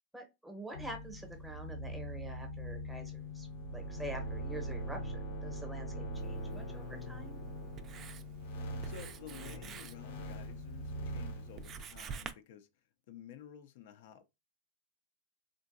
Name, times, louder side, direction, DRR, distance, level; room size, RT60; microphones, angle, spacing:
voice 1, 0.1-7.4, right 1 dB, 5° right, 0.8 m, -46 dB
sound 1, 0.7-11.8, equal, 90° left, 0.9 m, -42 dB
Writing, 6.1-12.3, right 6 dB, 30° right, 0.3 m, -50 dB
voice 2, 8.8-12.7 13.1-14.2, left 9 dB, 65° left, 0.5 m, -52 dB
3.6 x 2.2 x 2.5 m
supercardioid pair, 140°, 0 cm